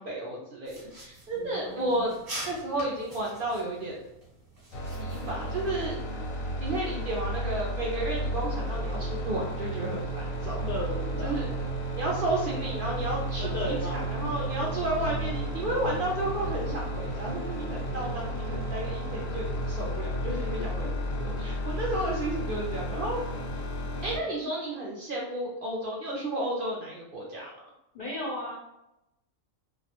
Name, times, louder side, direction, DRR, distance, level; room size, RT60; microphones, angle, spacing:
voice 1, 0.0-2.1 2.5-4.0 5.0-6.0 6.6-10.7 11.2-11.5 11.9-20.9 21.2-23.2 24.0-27.5, right 1 dB, 65° right, -3 dB, 0.5 m, -32 dB
sound 1, 0.6-5.9, right 1 dB, 30° right, 0.9 m, -44 dB
voice 2, 1.3-2.1 10.7-11.5 12.3-12.4 13.4-14.1 14.4-14.5 17.8-18.3 20.4-20.9 27.9-28.5, left 1 dB, 60° left, -4 dB, 0.5 m, -36 dB
sound 2, 4.7-24.2, right 1 dB, 85° left, 1.0 m, -33 dB
2.3 x 2.1 x 2.8 m, 0.88 s
omnidirectional pair, 1.4 m